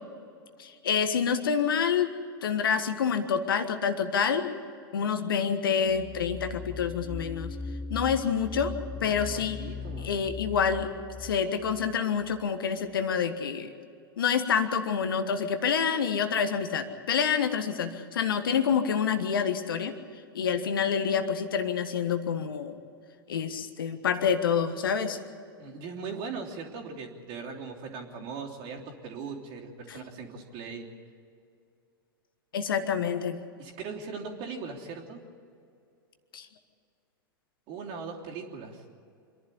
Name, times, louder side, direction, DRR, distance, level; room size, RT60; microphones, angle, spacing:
voice 1, 0.6-2.1 2.4-4.5 4.9-7.5 7.9-9.6 10.0-10.9 11.2-13.7 14.2-19.9 20.3-22.8 23.3-25.2 32.5-33.4 36.3-36.5, left 7 dB, 70° left, 8 dB, 1.5 m, -27 dB
sound 1, 5.9-12.5, left 4 dB, 5° left, 0.5 m, -39 dB
voice 2, 9.0-10.1 25.6-30.9 33.6-35.2 37.7-38.8, right 5 dB, 45° right, 0 dB, 3.3 m, -39 dB
26.0 x 11.0 x 9.9 m, 2.4 s
figure-of-eight pair, 90°, 12 cm